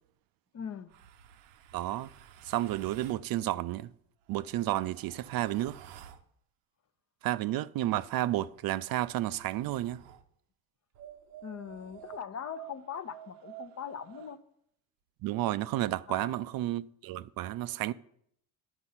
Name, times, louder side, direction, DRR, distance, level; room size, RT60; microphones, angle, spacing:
voice 1, 0.5-0.9 11.4-14.4 16.1-16.4, left 7 dB, 40° left, 0.8 m, -41 dB
sound 1, 0.9-3.3 4.2-6.3 7.9-10.3 10.9-14.4, right 10 dB, 85° right, 0.8 m, -52 dB
voice 2, 1.7-2.1 2.4-3.9 4.3-5.8 7.2-10.0 15.2-17.9, right 14 dB, 55° right, 0.5 m, -31 dB
11.0 x 5.5 x 5.6 m
supercardioid pair, 75°, 42 cm